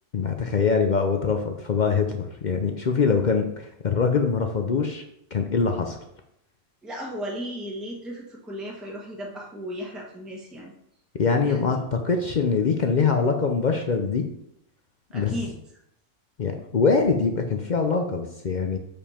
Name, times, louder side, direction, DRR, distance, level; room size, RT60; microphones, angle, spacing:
voice 1, 0.1-5.0 5.3-6.0 11.2-14.2 15.1-15.4 16.4-18.8, left 5 dB, 70° left, 4 dB, 0.4 m, -23 dB
voice 2, 6.8-10.7 11.4-11.8 15.1-15.5, equal, ahead, -3 dB, 1.2 m, -35 dB
7.1 x 5.2 x 4.3 m, 0.77 s
omnidirectional pair, 1.6 m